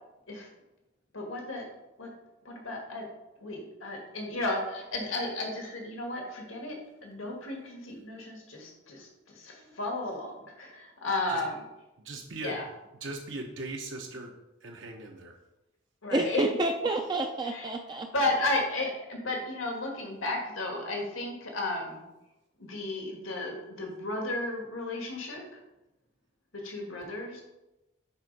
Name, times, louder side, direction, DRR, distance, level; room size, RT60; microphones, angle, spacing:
voice 1, 1.1-1.7 2.0-2.1 2.5-3.1 3.4-6.8 7.0-9.1 9.4-11.7 12.4-12.6 16.0-16.5 17.5-17.7 18.1-22.0 22.6-25.4 26.5-27.4, left 2 dB, 85° left, 1 dB, 1.7 m, -33 dB
voice 2, 12.0-12.6 13.0-14.3 14.6-15.3, right 2 dB, 65° right, 1 dB, 0.8 m, -39 dB
voice 3, 16.1-18.1, right 2 dB, 20° right, 4 dB, 0.4 m, -29 dB
8.2 x 3.5 x 5.2 m, 0.96 s
head